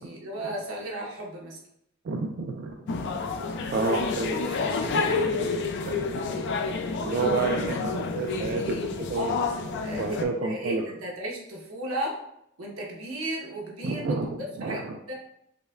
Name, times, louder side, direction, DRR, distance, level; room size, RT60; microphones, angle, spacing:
voice 1, 0.0-1.6 4.4-5.2 9.2-9.3 9.8-10.2 10.4-12.2 12.6-14.2 14.6-15.2, right 1 dB, 80° right, -2 dB, 0.9 m, -35 dB
voice 2, 2.0-2.8 3.7-4.5 5.9-6.3 7.0-9.4 10.0-10.8 13.8-14.3 14.6-15.0, right 4 dB, 50° right, 2 dB, 0.3 m, -29 dB
sound 1, 2.9-10.2, left 4 dB, 60° left, 0.4 m, -29 dB
5.1 x 2.2 x 2.3 m, 0.77 s
head